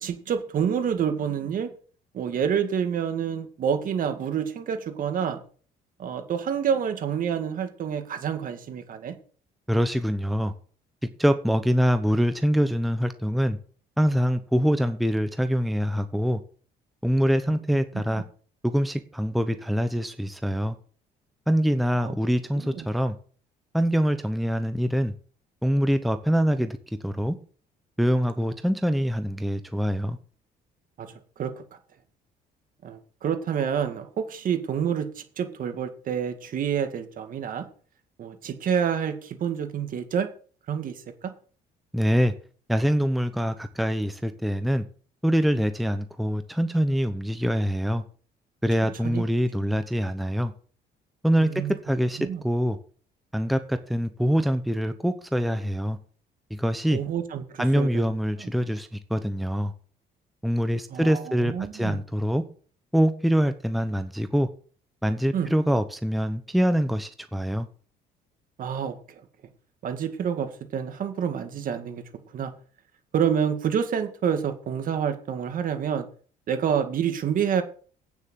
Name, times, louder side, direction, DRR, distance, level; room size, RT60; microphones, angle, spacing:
voice 1, 0.0-1.7 2.1-5.4 6.0-9.2 17.5-17.6 17.9-18.2 22.0-22.1 22.5-22.9 31.0-31.6 32.8-37.7 38.2-40.3 40.7-41.3 48.8-49.2 51.4-51.7 52.2-52.4 56.9-58.1 60.9-62.0 65.3-65.5 68.6-69.2 69.8-72.0 72.3-72.5 73.1-76.1 76.5-77.6, right 8 dB, 55° right, 2.1 m, -28 dB
voice 2, 9.7-10.5 11.2-13.6 14.0-16.4 17.0-18.2 18.6-20.8 21.5-23.1 23.7-25.1 25.6-26.8 27.0-27.4 28.0-30.2 41.9-42.3 42.7-44.8 45.2-48.0 48.6-50.5 51.2-52.8 53.3-56.0 56.5-57.0 57.6-59.7 60.4-62.4 62.9-64.5 65.0-67.7, equal, ahead, 0.9 m, -24 dB
9.1 x 6.9 x 7.5 m
cardioid pair, 110°, 17 cm